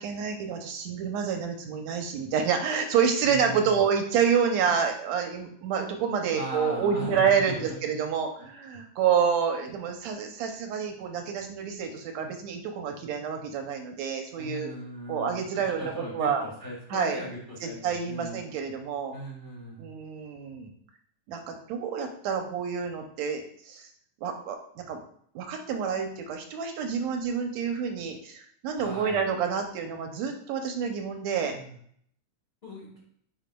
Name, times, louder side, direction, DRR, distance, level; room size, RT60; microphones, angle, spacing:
voice 1, 0.0-14.7 15.1-16.4 16.9-17.2 17.6-19.2 19.8-20.7 21.3-23.9 24.2-25.0 25.4-31.6, right 7 dB, 75° right, 4 dB, 1.8 m, -28 dB
voice 2, 3.2-3.8 6.3-7.8 14.4-18.4 19.1-19.9 28.8-29.2 31.5-31.8 32.6-33.0, equal, 30° left, -4 dB, 1.1 m, -38 dB
9.0 x 5.0 x 2.2 m, 0.64 s
omnidirectional pair, 3.4 m